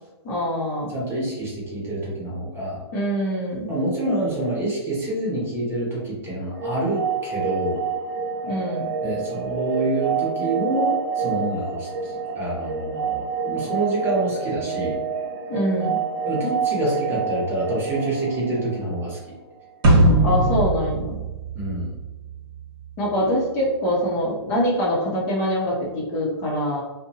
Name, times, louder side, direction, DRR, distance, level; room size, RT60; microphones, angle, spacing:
voice 1, 0.2-0.9 2.9-3.7 8.4-8.9 15.5-16.0 20.2-21.2 23.0-26.8, equal, 35° left, -3 dB, 0.7 m, -24 dB
voice 2, 0.9-2.8 3.7-7.8 9.0-15.0 16.2-19.3 21.5-22.0, right 1 dB, 15° right, -5 dB, 0.8 m, -27 dB
sound 1, 6.6-19.3, right 6 dB, 35° right, 0.4 m, -28 dB
sound 2, 19.8-22.3, right 1 dB, 55° right, 1.0 m, -19 dB
2.6 x 2.1 x 2.7 m, 1.2 s
hypercardioid pair, 135°, 14 cm